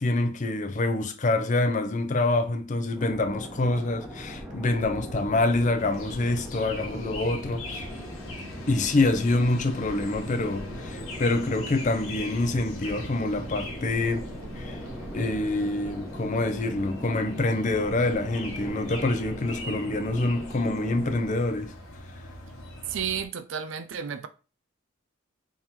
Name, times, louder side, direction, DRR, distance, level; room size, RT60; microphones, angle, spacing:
voice 1, 0.0-7.9 8.7-14.8 15.1-21.7, left 2 dB, 35° left, 0.5 m, -26 dB
sound 1, 3.0-21.4, equal, ahead, 0.9 m, -41 dB
sound 2, 4.4-16.6 17.1-17.2, right 1 dB, 40° right, 0.8 m, -44 dB
sound 3, 5.8-23.3, left 2 dB, 90° left, 1.3 m, -42 dB
voice 2, 22.9-24.3, right 7 dB, 60° right, 0.4 m, -32 dB
3.6 x 3.0 x 4.3 m
head